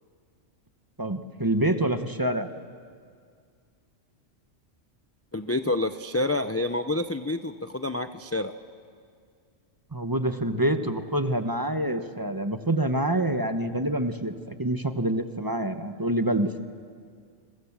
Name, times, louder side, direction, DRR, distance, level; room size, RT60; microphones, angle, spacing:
voice 1, 1.0-2.5 9.9-16.5, right 1 dB, 20° right, 8 dB, 1.0 m, -26 dB
voice 2, 5.3-8.5, left 2 dB, 20° left, 9 dB, 0.4 m, -28 dB
28.5 x 23.5 x 7.4 m, 2.1 s
omnidirectional pair, 1.3 m